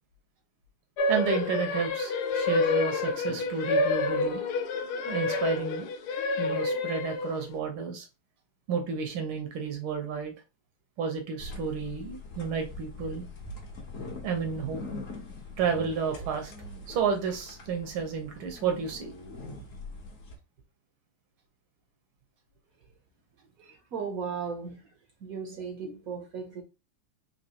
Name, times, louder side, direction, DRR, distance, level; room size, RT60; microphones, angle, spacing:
sound 1, 1.0-7.5, left 3 dB, 75° left, 1.0 m, -28 dB
voice 1, 1.1-4.4 5.1-5.9 6.4-8.0 8.7-10.3 11.0-13.2 14.2-14.8 15.6-16.5 16.9-19.1 23.6-23.8, right 6 dB, 80° right, 1.8 m, -31 dB
sound 2, 11.4-20.3, left 2 dB, 50° left, 1.1 m, -42 dB
voice 2, 23.9-24.9 25.2-26.6, right 6 dB, 60° right, 0.9 m, -36 dB
4.4 x 2.9 x 2.8 m
omnidirectional pair, 2.3 m